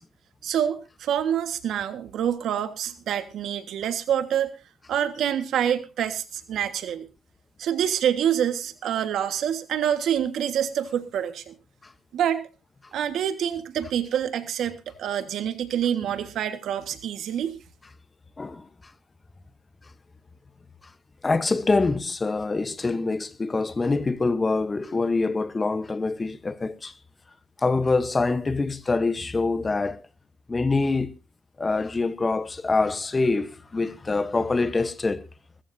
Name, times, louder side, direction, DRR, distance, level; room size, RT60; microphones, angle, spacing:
voice 1, 0.4-4.5 4.9-7.0 7.6-11.5 12.1-12.5 12.9-17.6, right 9 dB, 75° right, 1.6 m, -26 dB
voice 2, 21.2-26.9 27.6-30.0 30.5-31.1 31.6-35.3, left 3 dB, 25° left, 1.0 m, -25 dB
20.5 x 14.5 x 2.7 m
cardioid pair, 90°, 0 cm